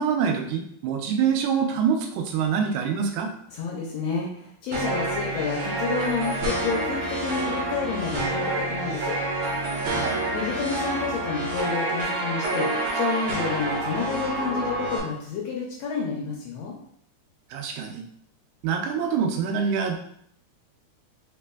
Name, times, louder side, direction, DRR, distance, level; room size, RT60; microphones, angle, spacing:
voice 1, 0.0-3.3 9.9-10.2 17.5-18.0 18.6-20.0, right 6 dB, 85° right, 2 dB, 2.1 m, -25 dB
voice 2, 3.5-9.2 10.3-16.7, left 5 dB, 75° left, -2 dB, 1.6 m, -30 dB
sound 1, 4.7-15.0, right 2 dB, 60° right, 1.7 m, -28 dB
4.1 x 4.1 x 2.3 m, 0.67 s
omnidirectional pair, 3.5 m